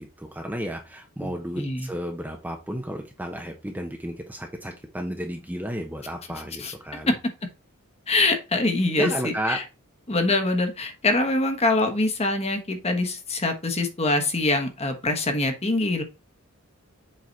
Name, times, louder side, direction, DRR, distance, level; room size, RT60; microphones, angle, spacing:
voice 1, 0.0-7.1 9.0-9.6, equal, 10° right, 2 dB, 0.8 m, -32 dB
voice 2, 1.2-1.9 6.6-6.7 7.1-7.2 8.1-9.6 10.1-16.0, left 2 dB, 30° left, 6 dB, 1.3 m, -24 dB
7.7 x 4.0 x 4.1 m, 0.27 s
head